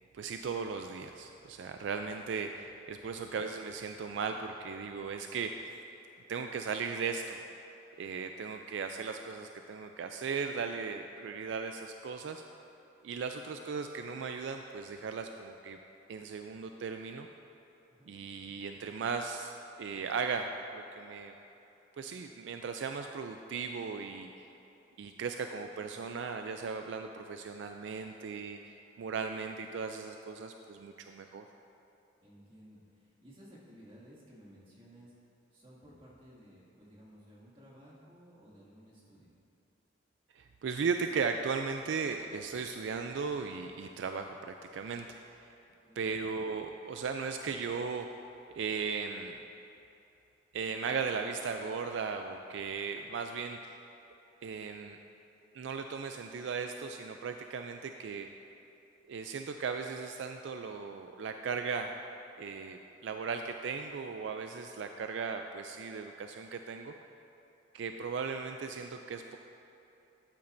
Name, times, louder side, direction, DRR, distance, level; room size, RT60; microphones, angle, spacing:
voice 1, 0.1-5.7 6.3-7.4 8.0-12.4 13.0-15.8 16.1-17.3 18.1-21.4 22.0-24.5 25.0-31.5 40.3-45.5 46.0-48.2 48.5-49.4 50.5-53.8 54.4-55.0 55.5-58.3 59.1-62.0 62.4-66.9 67.7-69.4, right 5 dB, 70° right, 5 dB, 0.3 m, -37 dB
voice 2, 32.2-35.1 35.5-39.3 45.6-46.1, equal, 30° right, -7 dB, 2.1 m, -56 dB
13.0 x 8.6 x 2.6 m, 2.9 s
head